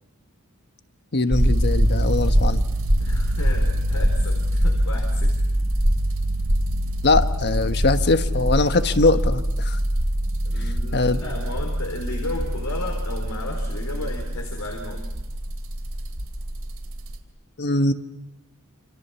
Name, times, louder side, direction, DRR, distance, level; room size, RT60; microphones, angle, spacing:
voice 1, 1.1-2.6 7.0-9.8 10.9-11.2 17.6-17.9, left 3 dB, 50° left, 9 dB, 1.3 m, -21 dB
sound 1, 1.3-17.2, equal, 65° right, 3.0 m, -23 dB
voice 2, 3.0-5.4 10.4-15.0, left 1 dB, 75° left, 2 dB, 4.3 m, -34 dB
29.0 x 27.0 x 7.1 m, 0.94 s
head